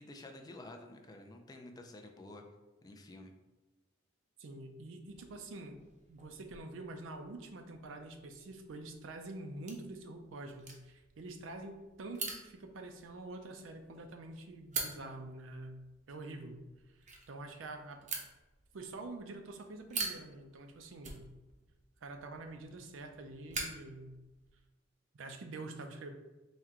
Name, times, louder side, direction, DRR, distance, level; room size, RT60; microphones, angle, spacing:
voice 1, 0.0-2.4 2.8-3.3, left 2 dB, 20° left, 4 dB, 0.3 m, -50 dB
voice 2, 4.4-5.8 6.1-15.8 16.1-16.6 17.3-18.1 18.7-21.2 22.0-24.1 25.1-26.1, right 2 dB, 85° right, 5 dB, 0.5 m, -46 dB
sound 1, 5.0-24.7, right 4 dB, 40° right, 0.6 m, -47 dB
4.3 x 2.2 x 3.6 m, 1.1 s
head